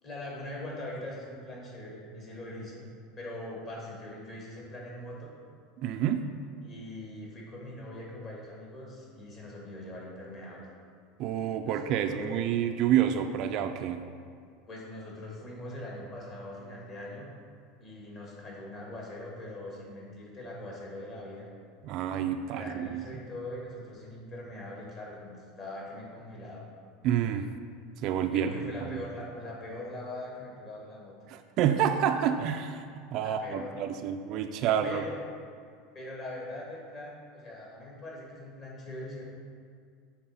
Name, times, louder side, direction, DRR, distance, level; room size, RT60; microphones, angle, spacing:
voice 1, 0.0-2.8 3.2-5.3 6.6-10.7 11.6-12.4 14.7-17.3 17.8-21.5 22.5-26.7 28.3-31.2 33.2-33.8 34.5-35.2 35.9-39.2, left 1 dB, 30° left, -3 dB, 2.0 m, -42 dB
voice 2, 5.8-6.3 11.2-14.0 21.8-23.0 27.0-27.5 28.0-28.5 28.8-29.0 31.3-32.8 33.1-35.0, right 9 dB, 45° right, 7 dB, 0.3 m, -28 dB
7.6 x 4.2 x 5.8 m, 2.2 s
supercardioid pair, 155°, 0 cm